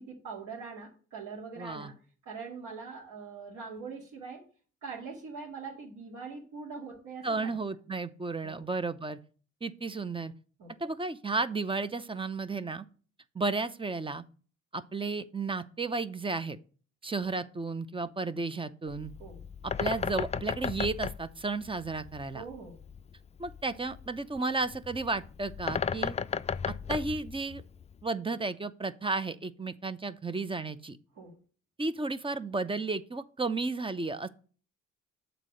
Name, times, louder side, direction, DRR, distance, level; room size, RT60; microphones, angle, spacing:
voice 1, 0.0-1.9 2.3-4.5 4.8-7.5 8.4-8.6 10.6-10.8 17.2-17.3 19.2-19.4 22.3-22.8 31.2-31.3, right 5 dB, 80° right, -5 dB, 2.5 m, -43 dB
voice 2, 1.6-1.9 7.2-9.2 9.6-10.3 10.8-12.9 13.3-14.2 14.7-16.6 17.0-19.1 19.6-22.4 23.4-26.2 26.7-27.6 28.0-31.0 31.8-34.3, right 3 dB, 15° right, 14 dB, 0.6 m, -33 dB
Bird, 18.9-28.0, left 6 dB, 25° left, 0.3 m, -36 dB
7.5 x 4.0 x 6.3 m, 0.40 s
cardioid pair, 90°, 30 cm